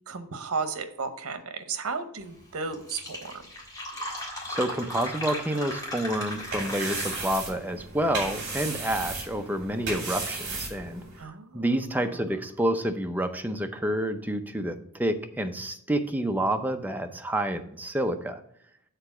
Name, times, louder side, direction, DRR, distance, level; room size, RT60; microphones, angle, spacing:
voice 1, 0.1-3.4 11.2-12.2, right 4 dB, 85° right, 9 dB, 0.8 m, -34 dB
Fill (with liquid), 2.4-2.5 2.7-7.5, left 1 dB, 15° left, 1.7 m, -36 dB
voice 2, 4.5-11.0 11.5-18.4, right 1 dB, 10° right, 6 dB, 0.5 m, -29 dB
sound 1, 6.1-11.2, right 3 dB, 50° right, 2.7 m, -35 dB
6.8 x 4.0 x 5.8 m, 0.71 s
head